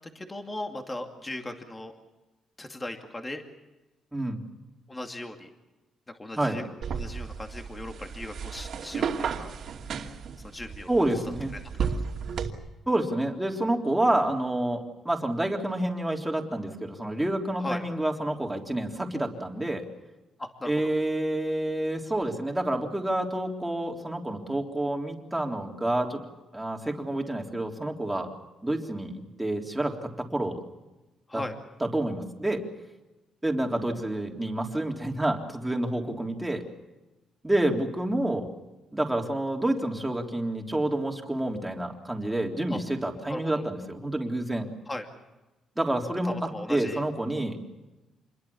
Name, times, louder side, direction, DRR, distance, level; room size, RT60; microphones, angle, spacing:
voice 1, 0.1-1.9 2.6-3.4 4.9-5.5 6.1-6.6 6.9-9.5 10.5-10.9 11.7-11.9 17.6-17.8 20.4-20.9 31.3-31.6 42.7-42.8 43.3-43.6 44.9-45.0 46.2-47.0, left 1 dB, 15° left, 4 dB, 2.5 m, -37 dB
sound 1, 6.8-12.5, right 6 dB, 60° right, 2.6 m, -33 dB
voice 2, 10.9-11.5 12.9-19.8 20.7-26.2 26.5-28.3 28.6-30.6 31.3-31.4 31.8-32.6 33.4-36.6 37.4-38.5 38.9-44.7 45.8-47.6, right 1 dB, 10° right, 1 dB, 3.6 m, -28 dB
27.5 x 22.0 x 7.1 m, 1.1 s
cardioid pair, 115°, 0 cm